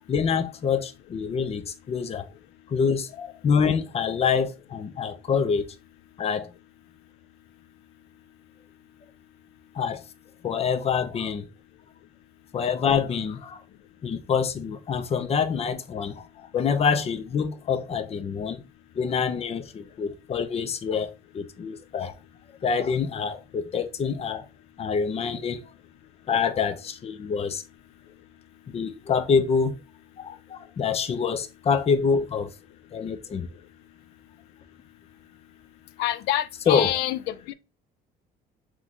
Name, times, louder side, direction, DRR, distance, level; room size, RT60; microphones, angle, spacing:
voice 1, 0.1-2.3 2.7-5.7 6.2-6.5 9.7-10.0 10.4-11.5 12.5-13.6 14.0-18.6 18.9-22.1 22.6-24.5 24.8-25.6 26.3-27.6 28.7-29.7 30.2-32.5 32.9-33.5 36.7-36.9, left 6 dB, 35° left, 0.6 m, -26 dB
voice 2, 36.0-37.5, left 13 dB, 85° left, 0.4 m, -27 dB
3.7 x 3.1 x 3.6 m
cardioid pair, 110°, 17 cm